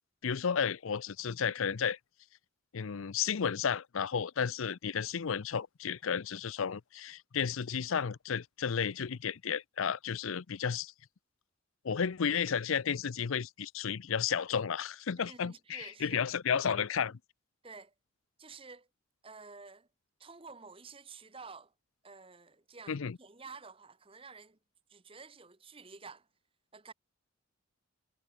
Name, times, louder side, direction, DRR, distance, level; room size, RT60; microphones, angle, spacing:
voice 1, 0.2-2.0 2.7-10.9 11.8-17.2 22.9-23.2, left 7 dB, 75° left, 0.5 m, -33 dB
voice 2, 15.2-16.2 17.6-17.9 18.4-18.9 19.2-19.9 20.2-21.7 22.0-24.6 24.9-26.3 26.7-26.9, right 4 dB, 25° right, 1.2 m, -50 dB
head